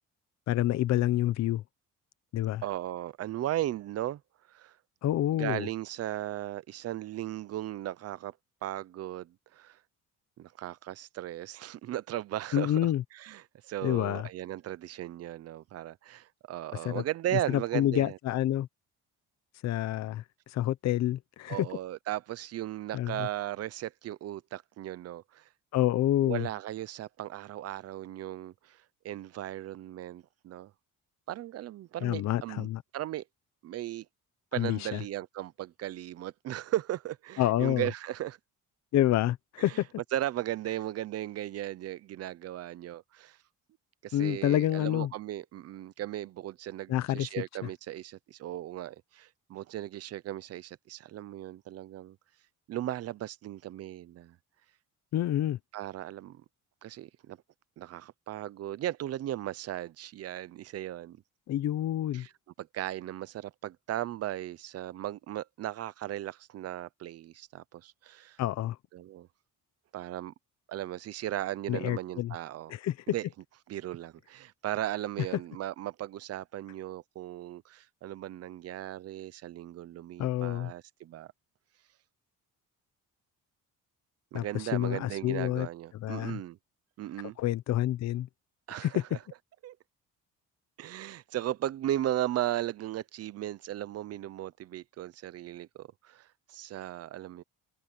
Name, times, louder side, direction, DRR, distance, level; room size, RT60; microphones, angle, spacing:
voice 1, 0.5-1.6 2.3-2.6 5.0-5.7 12.5-13.0 13.8-14.3 16.8-17.0 17.5-18.7 19.6-21.7 22.9-23.3 25.7-26.5 32.0-32.8 34.5-35.0 37.4-37.9 38.9-39.9 44.1-45.1 46.9-47.3 55.1-55.6 61.5-62.3 68.4-68.8 71.7-72.3 72.7-73.0 80.2-80.7 84.3-85.7 85.9-86.4 87.4-88.3 88.7-89.0, left 13 dB, 55° left, 0.8 m, -28 dB
voice 2, 2.6-4.2 4.5-4.8 5.3-8.3 8.6-9.8 10.4-18.2 21.5-25.4 26.2-30.7 31.3-32.7 32.9-33.2 33.6-34.1 34.5-38.4 39.7-39.8 40.1-43.4 44.0-52.2 52.7-54.4 55.7-56.4 56.8-57.4 57.8-61.2 62.1-62.3 62.6-68.4 68.9-69.3 69.9-70.3 70.7-72.7 73.1-73.3 73.7-81.3 84.3-86.6 87.0-87.4 88.7-89.2 89.6-89.8 90.8-97.4, right 13 dB, 50° right, 0.7 m, -36 dB
cardioid pair, 155°, 32 cm